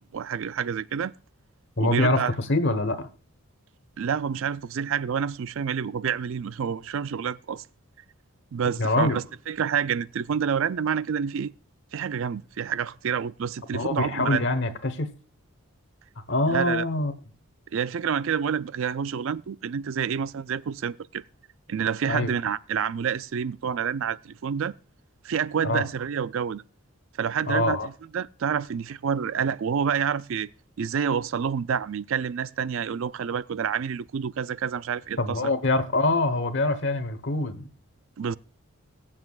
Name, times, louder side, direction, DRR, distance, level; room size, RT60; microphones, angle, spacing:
voice 1, 0.1-1.1 1.8-2.3 4.0-7.6 8.5-11.5 11.9-14.5 16.5-16.8 17.7-21.2 21.7-24.7 25.2-26.6 27.2-30.5 30.8-35.4 38.2-38.4, right 7 dB, 60° right, 0.4 m, -28 dB
voice 2, 1.8-3.1 8.8-9.2 13.7-15.1 16.3-17.1 22.1-22.3 25.6-25.8 27.5-27.9 35.2-37.7, left 2 dB, 55° left, 1.1 m, -24 dB
22.0 x 7.4 x 2.4 m
head